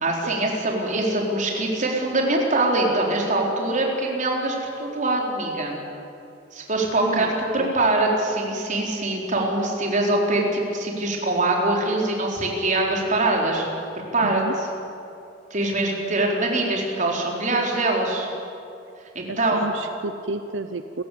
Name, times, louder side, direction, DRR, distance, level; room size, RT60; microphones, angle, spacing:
voice 1, 0.0-5.8 6.5-13.6 14.1-14.4 15.5-18.3 19.1-19.6, right 2 dB, 45° right, 0 dB, 4.3 m, -23 dB
voice 2, 6.9-7.3 7.6-7.7 14.2-14.5 19.3-21.0, right 3 dB, 90° right, 9 dB, 0.8 m, -31 dB
28.5 x 15.0 x 8.7 m, 2.6 s
head